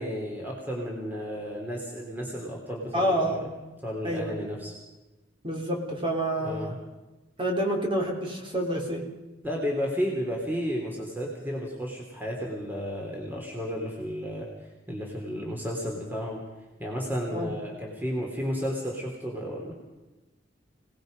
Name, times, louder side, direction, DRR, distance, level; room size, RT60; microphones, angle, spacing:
voice 1, 0.0-3.5 3.8-4.7 6.4-6.8 9.4-14.5 14.9-16.4 16.8-19.7, equal, 10° right, -1 dB, 3.3 m, -32 dB
voice 2, 2.9-3.5 4.0-4.4 5.4-6.7 7.4-9.0 17.3-17.5, right 1 dB, 30° right, 0 dB, 4.1 m, -28 dB
27.5 x 19.0 x 5.3 m, 1.1 s
head